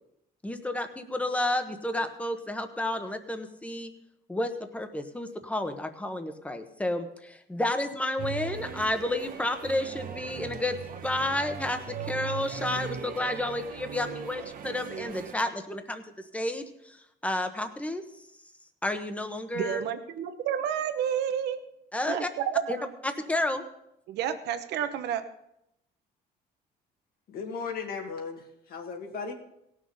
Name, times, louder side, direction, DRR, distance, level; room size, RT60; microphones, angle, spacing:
voice 1, 0.4-3.9 4.3-10.8 11.0-16.0 16.3-18.0 18.8-19.8 21.9-22.3 22.7-22.8 23.0-23.6, left 1 dB, 10° left, 7 dB, 1.2 m, -31 dB
sound 1, 8.2-15.3, right 7 dB, 55° right, 1.2 m, -39 dB
voice 2, 19.5-21.6 22.1-22.9 24.1-25.2, right 9 dB, 80° right, 9 dB, 1.1 m, -30 dB
voice 3, 27.3-29.3, left 5 dB, 65° left, 4 dB, 2.0 m, -36 dB
17.0 x 6.5 x 5.5 m, 0.80 s
cardioid pair, 110°, 17 cm